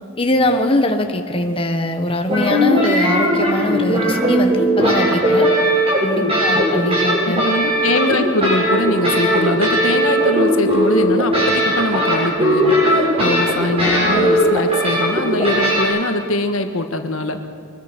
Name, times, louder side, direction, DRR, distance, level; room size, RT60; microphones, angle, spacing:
voice 1, 0.2-5.5 6.0-7.5, left 1 dB, 25° left, 5 dB, 1.3 m, -21 dB
sound 1, 2.3-15.8, equal, 30° right, 7.1 m, -17 dB
voice 2, 6.2-6.6 7.2-17.4, left 2 dB, 85° left, 6 dB, 1.8 m, -22 dB
24.0 x 21.5 x 6.3 m, 2.2 s
head